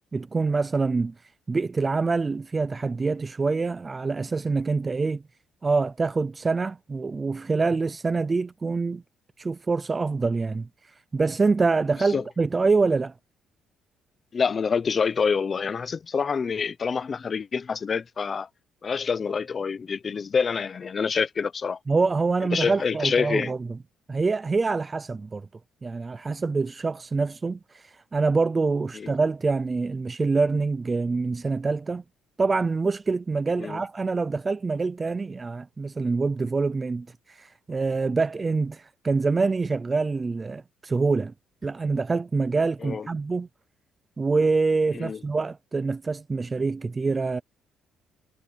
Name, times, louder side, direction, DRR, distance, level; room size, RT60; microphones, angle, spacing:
voice 1, 0.1-1.1 1.5-5.2 5.6-9.0 9.4-10.7 11.1-13.1 21.9-23.7 24.1-25.5 25.8-32.0 32.4-41.3 41.6-43.5 44.2-47.4, right 4 dB, 20° right, 0.4 m, -25 dB
voice 2, 14.3-18.5 18.8-21.8 22.5-23.5 28.9-29.2 33.6-33.8 42.8-43.1 44.9-45.2, left 5 dB, 30° left, 0.7 m, -27 dB
cardioid pair, 170°, 0 cm